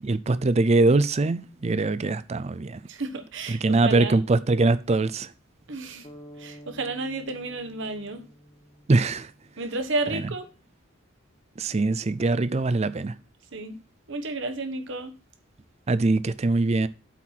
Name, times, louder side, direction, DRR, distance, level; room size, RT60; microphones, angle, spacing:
voice 1, 0.0-2.8 3.5-5.3 8.9-9.3 10.1-10.2 11.6-13.1 15.9-16.9, right 3 dB, 30° right, 0.5 m, -22 dB
voice 2, 2.9-4.2 5.7-6.1 6.4-8.2 9.6-10.5 13.5-13.7 14.1-15.1, right 2 dB, 60° right, 1.3 m, -32 dB
sound 1, 6.0-10.0, equal, 30° left, 1.1 m, -49 dB
8.1 x 4.7 x 5.7 m
head